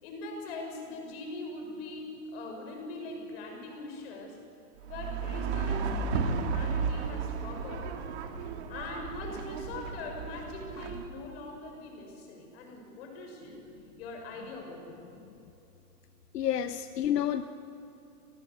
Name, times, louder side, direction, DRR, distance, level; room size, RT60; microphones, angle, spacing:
voice 1, 0.0-4.4 4.9-8.0 8.7-13.6 14.0-15.0, left 2 dB, 40° left, 2 dB, 6.1 m, -42 dB
sound 1, 4.8-11.1, right 5 dB, 45° right, 2.1 m, -33 dB
voice 2, 16.3-17.4, left 10 dB, 80° left, 9 dB, 1.1 m, -29 dB
29.5 x 18.5 x 8.2 m, 2.9 s
supercardioid pair, 175°, 47 cm